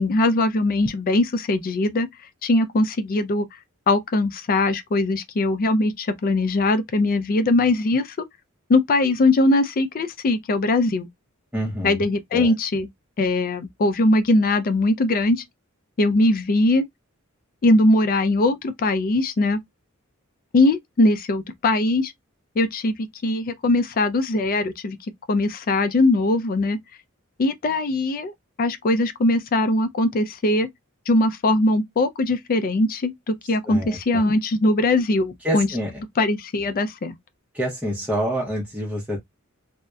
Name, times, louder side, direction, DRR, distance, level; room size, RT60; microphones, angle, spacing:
voice 1, 0.0-2.1 2.4-3.5 3.9-8.2 8.7-11.1 11.8-12.9 13.2-15.4 16.0-16.8 17.6-19.6 20.5-22.1 22.6-22.9 23.2-25.0 25.3-26.8 27.4-28.3 28.6-30.7 31.1-35.7 36.2-37.1, left 2 dB, 40° left, 0.4 m, -21 dB
voice 2, 11.5-12.0 12.3-12.5 33.7-34.2 35.4-35.9 37.5-39.2, equal, 5° right, 0.6 m, -27 dB
2.7 x 2.0 x 2.2 m
head